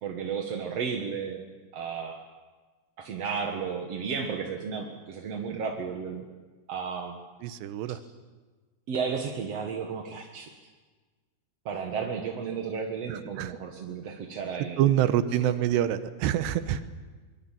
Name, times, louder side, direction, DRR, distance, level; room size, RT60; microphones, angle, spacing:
voice 1, 0.0-1.4 1.7-2.2 3.0-6.2 6.7-7.2 7.9-8.0 8.9-10.5 11.7-15.1, right 6 dB, 55° right, 2 dB, 1.7 m, -33 dB
voice 2, 7.4-8.0 13.1-13.5 14.8-16.8, right 11 dB, 80° right, 11 dB, 3.1 m, -26 dB
24.5 x 22.5 x 7.5 m, 1.3 s
omnidirectional pair, 5.0 m